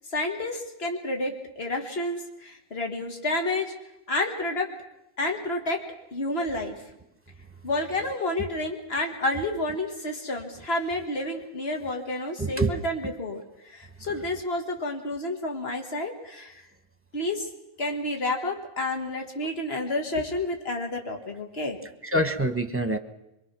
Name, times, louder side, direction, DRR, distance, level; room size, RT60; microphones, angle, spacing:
voice 1, 0.1-3.7 4.1-4.7 5.2-5.8 6.1-6.7 7.6-16.6 17.1-17.5 17.8-21.8, left 2 dB, 70° left, 3 dB, 2.3 m, -30 dB
voice 2, 12.4-12.9 14.1-14.2 22.0-23.0, right 1 dB, 10° right, 8 dB, 1.2 m, -26 dB
23.5 x 23.0 x 6.1 m, 0.89 s
omnidirectional pair, 1.1 m